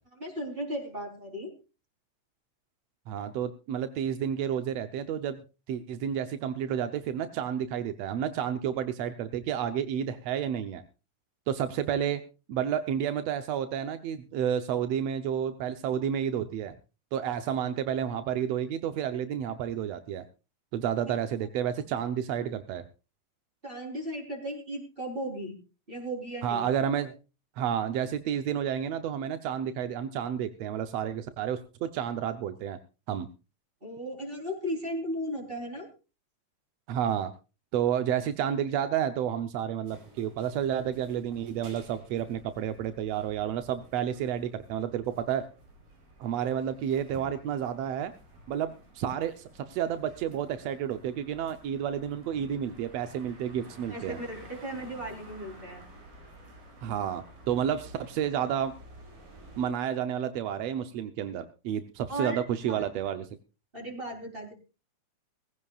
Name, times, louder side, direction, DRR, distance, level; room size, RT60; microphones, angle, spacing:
voice 1, 0.2-1.5 21.1-21.2 23.6-25.6 25.9-26.7 33.8-35.9 53.9-55.9 62.1-62.4 62.7-62.8 63.7-64.5, equal, 15° right, 3 dB, 4.0 m, -36 dB
voice 2, 3.1-5.4 5.7-10.8 11.5-12.2 12.5-16.8 17.1-20.2 20.7-22.8 26.4-27.2 27.6-32.8 33.1-33.3 36.9-37.3 37.7-45.4 46.2-48.1 48.5-54.2 56.8-58.7 59.6-63.3, right 9 dB, 70° right, 9 dB, 1.6 m, -30 dB
sound 1, 39.8-59.7, right 1 dB, 90° right, 6.4 m, -52 dB
20.5 x 15.5 x 2.4 m, 0.31 s
omnidirectional pair, 3.9 m